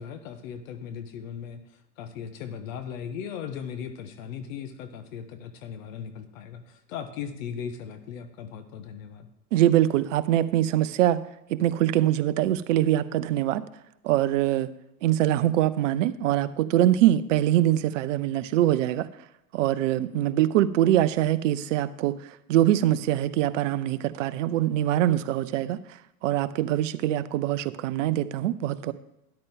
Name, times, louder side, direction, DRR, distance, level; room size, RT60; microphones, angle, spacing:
voice 1, 0.0-1.6 2.0-9.3, left 7 dB, 55° left, 9 dB, 1.4 m, -38 dB
voice 2, 9.5-11.2 11.5-13.6 14.0-14.7 15.0-19.1 19.5-22.2 22.5-25.8 26.2-28.9, right 13 dB, 50° right, 14 dB, 0.8 m, -23 dB
13.0 x 10.5 x 3.8 m, 0.84 s
figure-of-eight pair, 100°, 49 cm